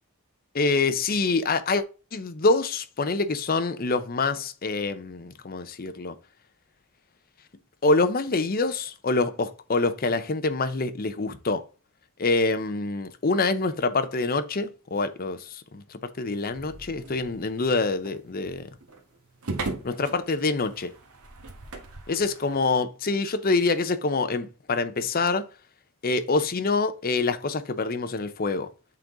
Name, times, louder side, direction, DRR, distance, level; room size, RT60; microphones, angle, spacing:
voice 1, 0.5-1.8 2.1-6.1 7.8-11.6 12.2-18.7 19.8-20.9 22.1-25.5 26.0-28.7, left 3 dB, 40° left, 0.6 m, -26 dB
sound 1, 16.5-22.8, right 3 dB, 80° right, 1.4 m, -39 dB
7.6 x 3.8 x 3.8 m
head